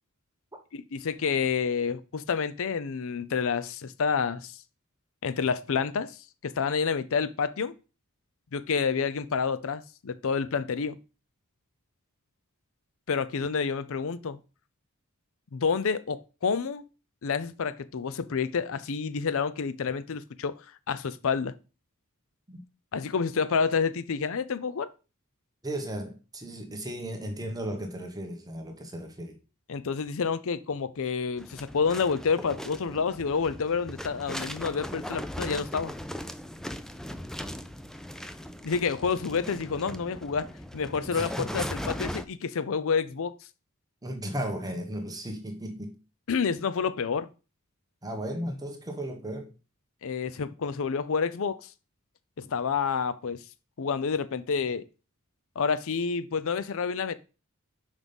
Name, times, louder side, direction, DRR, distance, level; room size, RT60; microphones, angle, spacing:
voice 1, 0.7-4.6 5.2-6.2 6.4-7.7 8.5-11.0 13.1-14.4 15.5-16.8 17.2-21.5 22.9-24.9 29.7-35.9 38.6-43.3 46.3-47.3 50.0-51.7 52.4-53.4 53.8-54.8 55.6-57.1, left 5 dB, 65° left, 0.5 m, -29 dB
voice 2, 25.6-29.4 41.0-42.0 44.0-45.9 48.0-49.5, right 1 dB, 15° right, 1.2 m, -35 dB
sound 1, 31.4-42.2, equal, ahead, 0.4 m, -38 dB
6.1 x 5.4 x 5.3 m
head